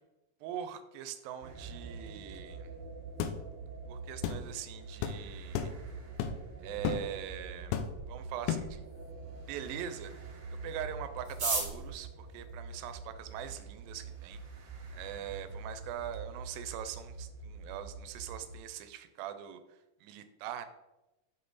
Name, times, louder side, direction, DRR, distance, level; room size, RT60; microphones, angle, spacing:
voice 1, 0.4-2.7 3.9-5.7 6.6-7.8 8.1-8.8 9.5-10.3 10.6-14.4 14.9-19.6 20.0-20.7, right 10 dB, 90° right, 10 dB, 2.4 m, -42 dB
sound 1, 1.4-18.6, right 4 dB, 70° right, 1.6 m, -45 dB
sound 2, 3.2-3.4 4.2-4.4 5.0-5.2 5.5-5.8 6.2-6.5 6.8-7.1 7.7-8.1 8.5-8.8, left 8 dB, 80° left, 2.0 m, -33 dB
sound 3, 11.2-13.5 14.3-14.4 14.6-14.7 15.0-15.4 15.8-15.9 16.0-16.5 16.8-17.0 17.3-17.6, right 2 dB, 35° right, 1.7 m, -36 dB
6.2 x 5.6 x 3.9 m, 1.0 s
omnidirectional pair, 4.0 m